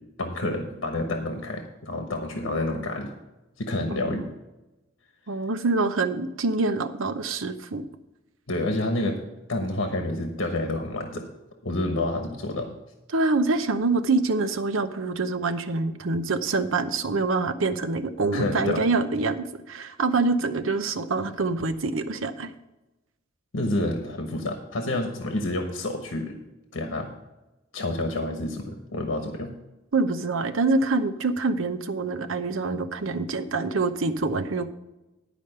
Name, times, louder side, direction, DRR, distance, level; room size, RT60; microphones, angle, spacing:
voice 1, 0.2-3.1 3.6-4.3 8.5-9.2 9.5-11.2 11.6-12.8 18.3-18.8 23.5-26.4 26.7-27.1 27.7-29.5, left 2 dB, 85° left, 4 dB, 1.1 m, -28 dB
voice 2, 3.9-4.2 5.3-7.8 13.1-22.5 29.9-34.7, right 3 dB, 85° right, 10 dB, 0.8 m, -25 dB
11.0 x 5.1 x 6.5 m, 1.0 s
head